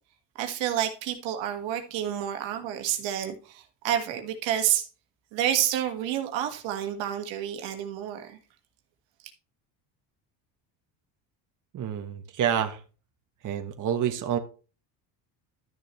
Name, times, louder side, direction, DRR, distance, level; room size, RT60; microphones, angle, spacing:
voice 1, 0.4-4.8 5.3-8.4, right 10 dB, 80° right, 1.7 m, -29 dB
voice 2, 11.7-12.8 13.4-14.4, right 9 dB, 45° right, 1.2 m, -28 dB
12.5 x 6.6 x 3.1 m
supercardioid pair, 90°, 45 cm